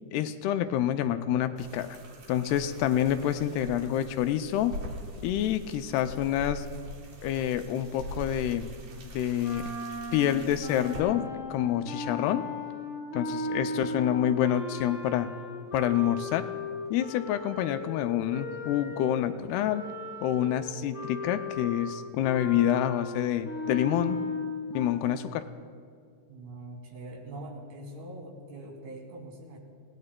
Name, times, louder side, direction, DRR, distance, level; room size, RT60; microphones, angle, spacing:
voice 1, 0.1-2.0 2.3-4.7 5.2-6.7 7.2-8.7 9.0-9.6 10.1-11.2 11.5-12.4 13.1-15.3 15.7-16.5 16.9-19.8 20.2-24.2 24.7-25.5, left 11 dB, 80° left, 9 dB, 2.4 m, -27 dB
sound 1, 1.6-11.0, equal, 60° right, 2.9 m, -43 dB
sound 2, 9.4-19.2 19.7-24.9, left 2 dB, 20° left, 5.2 m, -37 dB
voice 2, 26.3-29.6, right 1 dB, 85° right, 0 dB, 4.6 m, -43 dB
28.0 x 17.5 x 2.2 m, 2.1 s
omnidirectional pair, 4.7 m